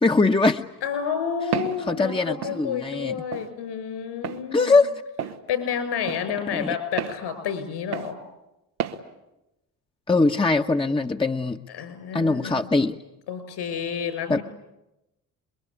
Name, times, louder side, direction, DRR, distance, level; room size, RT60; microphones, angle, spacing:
voice 1, 0.0-0.6 1.8-3.2 4.5-4.9 6.5-6.8 10.1-11.6 12.1-13.0 14.3-14.4, left 3 dB, 10° left, 5 dB, 1.2 m, -22 dB
voice 2, 0.8-4.8 5.5-8.2 11.8-12.7 13.3-14.4, left 7 dB, 65° left, 11 dB, 6.4 m, -30 dB
Walk footsteps, 1.5-1.8 2.4-2.6 3.3-3.5 4.2-4.4 5.2-5.4 6.1-6.2 7.0-7.2 7.9-8.1 8.8-9.0, right 9 dB, 90° right, 1.6 m, -30 dB
28.5 x 22.5 x 8.5 m, 0.92 s
hypercardioid pair, 50°, 44 cm